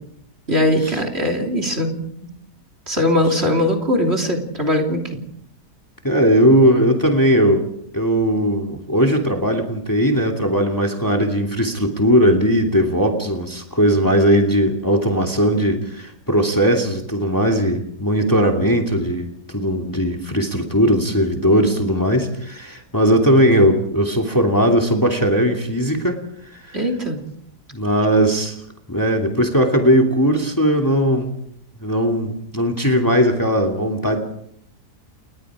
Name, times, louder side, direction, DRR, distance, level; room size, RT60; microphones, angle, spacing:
voice 1, 0.5-2.0 2.9-5.2 26.7-27.2 28.2-28.3, left 1 dB, 35° right, 5 dB, 3.5 m, -20 dB
voice 2, 6.0-7.7 7.9-26.2 26.5-26.8 27.7-28.6 28.9-31.3 31.8-34.2, equal, 10° left, 2 dB, 2.7 m, -18 dB
29.5 x 20.5 x 4.9 m, 0.72 s
omnidirectional pair, 1.8 m